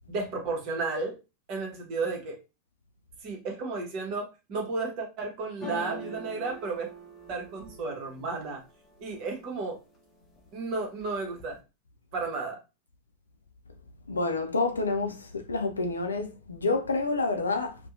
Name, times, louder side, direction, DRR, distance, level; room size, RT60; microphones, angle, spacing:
voice 1, 0.1-1.1 1.5-2.4 3.2-6.9 7.3-8.6 9.0-9.8 10.5-11.6 12.1-12.6, right 3 dB, 40° right, 0.8 m, -33 dB
sound 1, 5.6-9.5 9.9-10.5 10.8-11.6, right 2 dB, 25° left, 0.7 m, -43 dB
voice 2, 14.1-17.8, left 3 dB, 75° left, 0.4 m, -28 dB
2.6 x 2.1 x 2.4 m
figure-of-eight pair, 90°, 0 cm